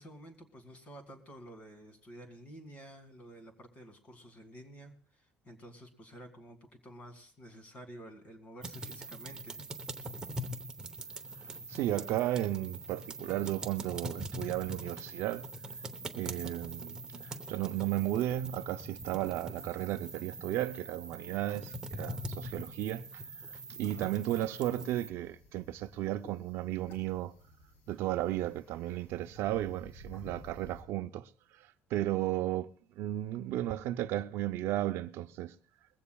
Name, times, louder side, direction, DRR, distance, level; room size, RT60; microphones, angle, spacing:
voice 1, 0.0-9.6 23.8-24.1, equal, 30° left, 2.0 m, -51 dB
sound 1, 8.6-25.1, right 1 dB, 15° right, 0.8 m, -43 dB
voice 2, 11.5-15.5 16.1-17.0 17.2-27.3 27.9-32.7 33.0-35.5, right 14 dB, 65° right, 0.5 m, -34 dB
sound 2, 24.7-30.8, left 1 dB, 70° left, 4.1 m, -54 dB
21.5 x 15.5 x 2.3 m
cardioid pair, 180°, 5 cm